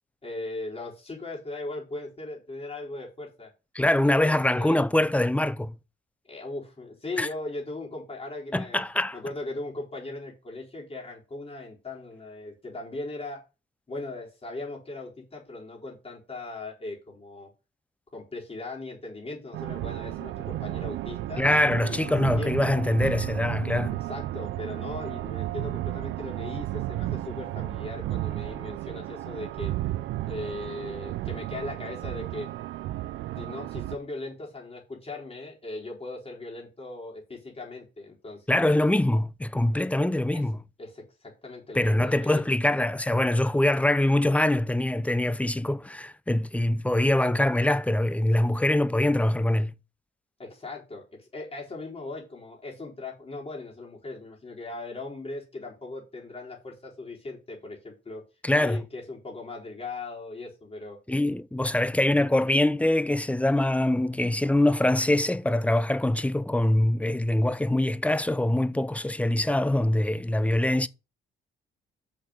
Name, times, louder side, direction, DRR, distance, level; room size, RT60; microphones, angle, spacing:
voice 1, 0.2-3.5 4.0-4.8 6.2-8.8 9.1-13.4 13.9-17.5 18.1-21.4 21.9-22.0 22.4-22.6 24.0-29.7 30.3-32.5 33.4-38.6 40.3-40.4 40.8-42.5 50.4-58.2 58.5-61.0 70.4-70.6, left 2 dB, 30° left, 4.3 m, -38 dB
voice 2, 3.7-5.7 7.2-7.3 8.5-9.2 21.4-24.0 38.5-40.6 41.7-49.7 58.4-58.8 61.1-70.9, left 1 dB, 5° left, 0.6 m, -24 dB
sound 1, 19.5-34.0, right 15 dB, 90° right, 0.6 m, -33 dB
6.4 x 5.9 x 6.5 m
cardioid pair, 90°, 20 cm